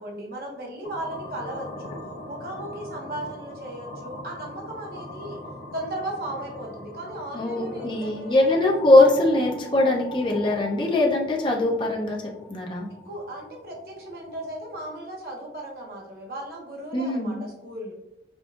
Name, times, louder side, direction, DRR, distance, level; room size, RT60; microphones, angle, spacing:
voice 1, 0.0-1.9 2.3-5.4 5.7-8.4 13.0-17.9, right 1 dB, 55° right, -1 dB, 0.8 m, -36 dB
sound 1, 0.8-14.8, left 2 dB, 70° left, 0.7 m, -41 dB
voice 2, 7.3-12.2 12.5-12.9 16.9-17.4, left 2 dB, 25° left, -1 dB, 0.5 m, -21 dB
5.1 x 2.3 x 2.3 m, 0.94 s
head